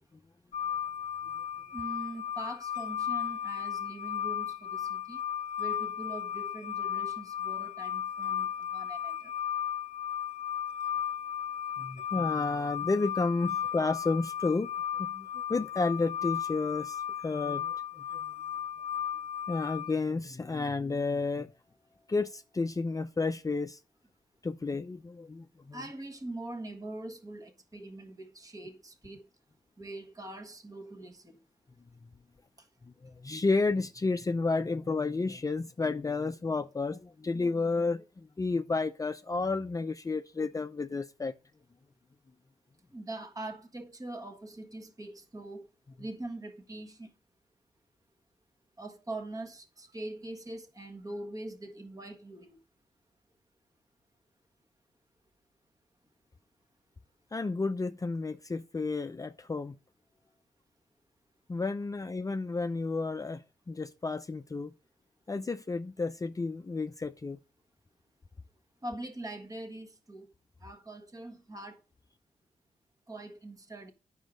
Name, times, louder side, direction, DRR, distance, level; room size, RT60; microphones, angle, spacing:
sound 1, 0.5-19.9, left 9 dB, 65° left, 0.5 m, -35 dB
voice 1, 1.7-5.2 5.6-9.3 25.7-29.3 29.8-31.4 32.6-32.7 42.9-45.7 46.0-47.1 48.8-52.6 68.8-70.3 70.6-71.8 73.1-73.9, right 2 dB, 25° right, 1.5 m, -43 dB
voice 2, 11.8-14.7 15.0-17.7 18.1-18.2 19.5-21.5 22.1-23.8 24.4-25.8 32.8-41.3 57.3-59.8 61.5-63.4 63.7-64.7 65.3-67.4, left 3 dB, 25° left, 0.6 m, -31 dB
9.1 x 6.4 x 5.1 m
cardioid pair, 70°, 14 cm